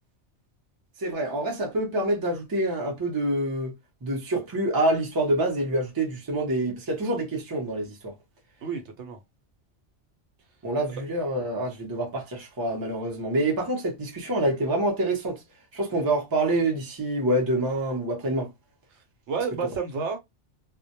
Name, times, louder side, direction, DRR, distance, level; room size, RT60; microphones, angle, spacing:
voice 1, 1.0-3.7 4.0-8.1 10.6-15.4 15.7-18.5 19.6-19.7, right 1 dB, 25° right, 0.5 m, -26 dB
voice 2, 8.6-9.2 19.3-20.2, right 5 dB, 75° right, 0.9 m, -30 dB
2.2 x 2.1 x 2.7 m
omnidirectional pair, 1.3 m